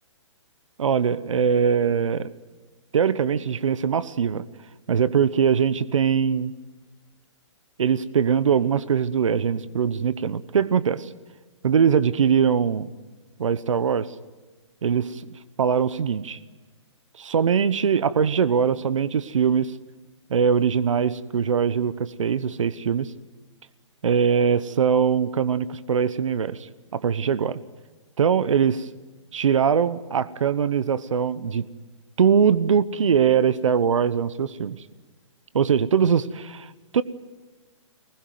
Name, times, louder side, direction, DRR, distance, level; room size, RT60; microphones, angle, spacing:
voice 1, 0.8-2.3 2.9-4.4 4.9-6.5 7.8-11.1 11.6-12.9 13.4-14.1 14.8-15.2 15.6-16.4 17.2-19.7 20.3-23.1 24.0-27.6 28.2-28.9 29.3-31.7 32.2-34.8 35.5-37.0, right 7 dB, 80° right, 15 dB, 1.0 m, -22 dB
23.5 x 20.0 x 9.4 m, 1.3 s
hypercardioid pair, 160°, 16 cm